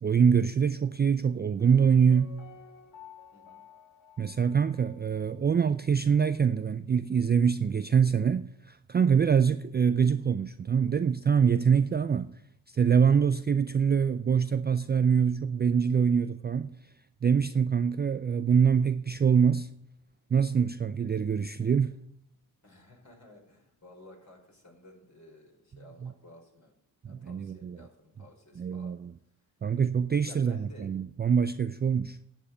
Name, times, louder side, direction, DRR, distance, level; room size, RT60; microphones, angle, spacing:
voice 1, 0.0-2.4 4.2-12.3 12.7-16.8 17.2-19.7 20.3-22.0 26.0-26.1 27.0-27.8 28.6-29.1 29.6-32.2, right 6 dB, 25° right, 0.4 m, -24 dB
Piano, 1.6-5.4 5.6-5.7, left 4 dB, 80° left, 2.6 m, -52 dB
voice 2, 3.3-3.6 22.6-26.7 27.0-28.9 29.4-29.5 30.2-30.9, left 2 dB, 35° left, 5.0 m, -54 dB
10.0 x 7.4 x 7.9 m
supercardioid pair, 55°, 46 cm